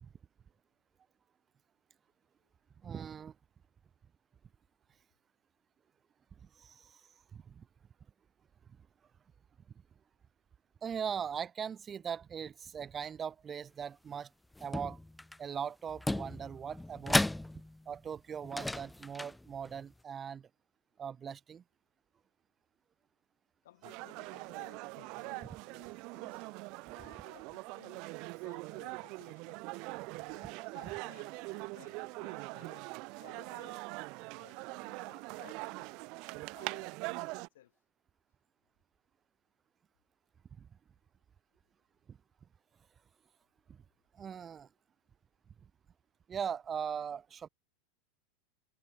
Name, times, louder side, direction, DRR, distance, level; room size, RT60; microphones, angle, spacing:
voice 1, 2.8-3.3 6.6-7.7 10.8-14.3 14.6-15.0 15.4-17.2 17.9-20.5 21.0-21.6 40.6-40.7 42.1-42.2 43.7-43.8 44.1-44.7 46.3-47.5, right 7 dB, 20° right, 2.4 m, -40 dB
sound 1, 14.5-15.4 15.9-17.9 18.4-19.8, left 1 dB, 5° left, 0.7 m, -35 dB
voice 2, 23.6-26.4 26.9-29.6 30.2-32.9 33.2-33.9 34.3-35.9 36.5-37.8, left 13 dB, 80° left, 4.8 m, -60 dB
sound 2, 23.8-37.5, right 27 dB, 45° right, 1.4 m, -43 dB
supercardioid pair, 155°, 0 cm